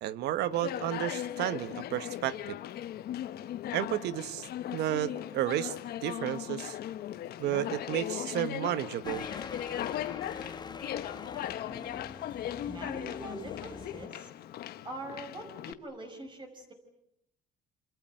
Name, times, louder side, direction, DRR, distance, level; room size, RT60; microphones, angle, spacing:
voice 1, 0.0-2.6 3.7-4.5 4.7-5.7 6.0-6.8 7.4-9.3, right 12 dB, 80° right, 14 dB, 1.2 m, -32 dB
Conversation, 0.5-15.7, left 12 dB, 70° left, 1.2 m, -38 dB
sound 1, 9.0-14.1, left 5 dB, 25° left, 1.1 m, -43 dB
voice 2, 12.7-14.3 14.8-16.7, right 1 dB, 30° right, 4 dB, 5.0 m, -43 dB
28.0 x 26.5 x 7.8 m, 0.81 s
cardioid pair, 110°, 17 cm